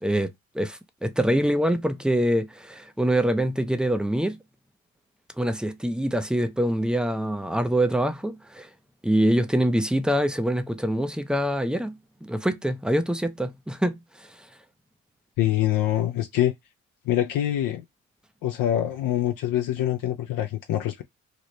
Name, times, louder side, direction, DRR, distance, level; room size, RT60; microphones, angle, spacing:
voice 1, 0.0-4.4 5.4-8.7 9.0-14.3, right 1 dB, ahead, 0.4 m, -25 dB
voice 2, 15.4-16.5 17.1-17.8 18.4-21.0, left 12 dB, 70° left, 0.5 m, -25 dB
3.1 x 2.1 x 3.8 m
cardioid pair, 95°, 34 cm